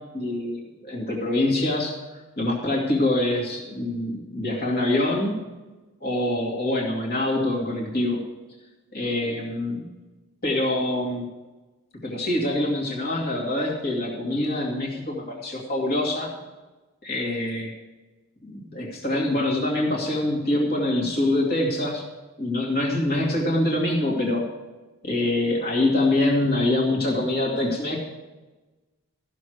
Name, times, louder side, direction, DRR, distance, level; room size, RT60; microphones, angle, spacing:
voice 1, 0.1-2.0 2.4-5.4 6.0-8.2 8.9-9.9 10.4-11.3 12.0-16.3 17.0-17.7 18.4-22.0 22.4-24.5 25.0-28.0, left 1 dB, 45° left, -2 dB, 2.4 m, -25 dB
14.5 x 6.4 x 6.5 m, 1.2 s
head